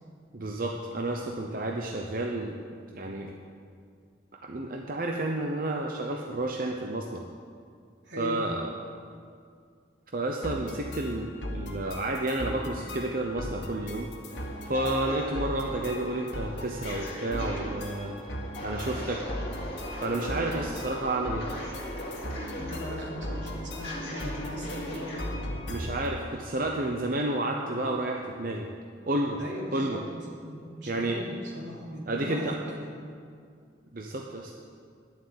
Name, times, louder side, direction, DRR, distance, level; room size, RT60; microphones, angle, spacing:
voice 1, 0.3-2.6 2.9-3.3 4.4-7.2 8.2-8.7 10.1-14.1 14.6-18.2 18.6-19.2 20.0-21.5 25.7-28.7 29.1-29.4 29.7-30.0 30.9-31.2 32.1-32.6 33.9-34.5, right 2 dB, 50° right, 1 dB, 0.8 m, -31 dB
voice 2, 8.0-8.4 22.5-25.1 29.4-30.0 30.4-32.8, equal, 80° right, -3 dB, 3.1 m, -39 dB
sound 1, 10.4-26.2, equal, 70° left, 1.8 m, -38 dB
sound 2, 14.3-25.5, equal, 35° left, 3.7 m, -39 dB
11.5 x 7.7 x 8.6 m, 2.2 s
head